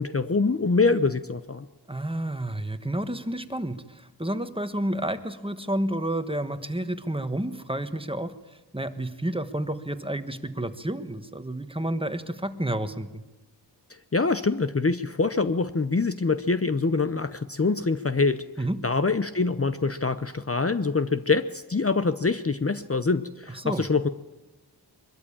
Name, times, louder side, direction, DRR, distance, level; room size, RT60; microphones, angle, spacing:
voice 1, 0.0-1.7 14.1-18.4 18.8-24.1, left 4 dB, 35° left, 11 dB, 0.8 m, -25 dB
voice 2, 1.9-13.2 18.6-18.8 23.5-23.8, right 1 dB, 15° right, 9 dB, 1.4 m, -30 dB
23.5 x 13.5 x 8.8 m, 1.2 s
wide cardioid pair, 55°, 41 cm